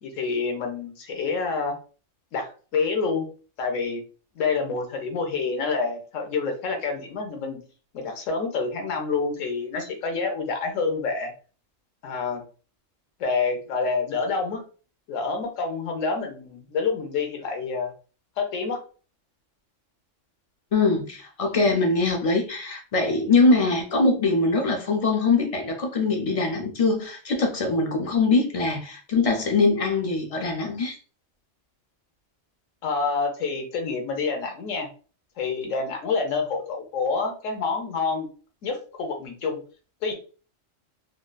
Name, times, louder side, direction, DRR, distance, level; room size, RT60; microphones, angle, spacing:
voice 1, 0.0-1.8 2.3-3.3 3.6-4.0 4.4-7.6 7.9-11.3 12.0-12.4 13.2-14.6 15.1-17.9 18.4-18.8 32.8-34.9 35.4-38.3 38.6-39.6 40.0-40.1, left 4 dB, 80° left, 1.1 m, -27 dB
voice 2, 20.7-31.0, left 3 dB, 65° left, 0.3 m, -22 dB
3.4 x 2.5 x 2.3 m
omnidirectional pair, 1.3 m